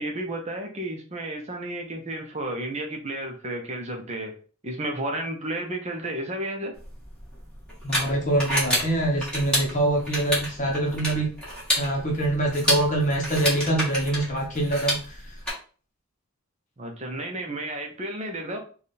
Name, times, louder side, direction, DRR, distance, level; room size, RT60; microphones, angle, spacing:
voice 1, 0.0-4.3 4.6-6.7 16.8-18.6, right 1 dB, 30° right, 2 dB, 0.7 m, -32 dB
sound 1, 6.8-15.5, equal, 5° left, 1.4 m, -29 dB
voice 2, 7.8-11.3 11.8-15.2, right 1 dB, 35° left, 0 dB, 0.8 m, -24 dB
3.5 x 2.3 x 4.1 m, 0.40 s
head